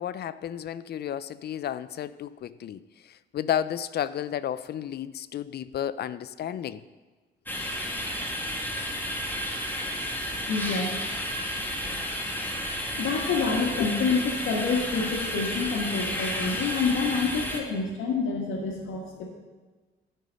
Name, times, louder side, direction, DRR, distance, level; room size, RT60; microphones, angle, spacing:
voice 1, 0.0-2.8 3.3-6.8 13.8-13.9, left 10 dB, 55° left, 16 dB, 0.4 m, -32 dB
sound 1, 7.5-17.6, equal, 10° left, 1.6 m, -32 dB
voice 2, 10.5-11.4 12.9-19.3, left 4 dB, 85° left, 0 dB, 1.4 m, -28 dB
12.5 x 5.6 x 5.2 m, 1.3 s
cardioid pair, 90°, 20 cm